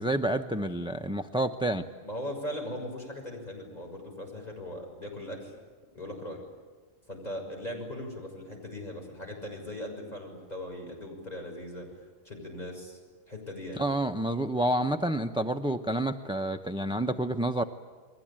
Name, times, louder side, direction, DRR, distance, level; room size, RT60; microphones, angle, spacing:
voice 1, 0.0-1.9 13.8-17.6, right 1 dB, 5° right, 8 dB, 0.5 m, -29 dB
voice 2, 2.0-5.5 5.9-6.4 7.1-11.9 12.2-13.0 13.3-13.8, left 1 dB, 30° left, 0 dB, 6.7 m, -39 dB
30.0 x 21.5 x 8.9 m, 1.4 s
omnidirectional pair, 1.4 m